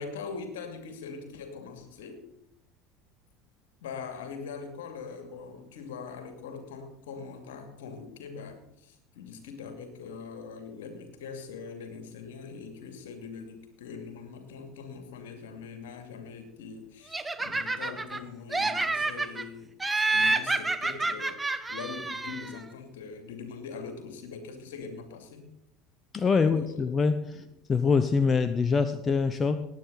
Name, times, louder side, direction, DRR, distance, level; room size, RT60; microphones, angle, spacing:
voice 1, 0.0-2.2 3.8-25.4 26.3-26.8 27.3-27.5, left 5 dB, 70° left, 6 dB, 2.5 m, -42 dB
Laughter, 17.1-18.2 18.5-19.4 19.8-22.6, right 3 dB, 15° right, 1.0 m, -28 dB
voice 2, 26.1-27.4 27.7-29.6, left 5 dB, 30° left, 11 dB, 0.8 m, -24 dB
18.5 x 9.3 x 4.0 m, 0.80 s
hypercardioid pair, 75°, 0 cm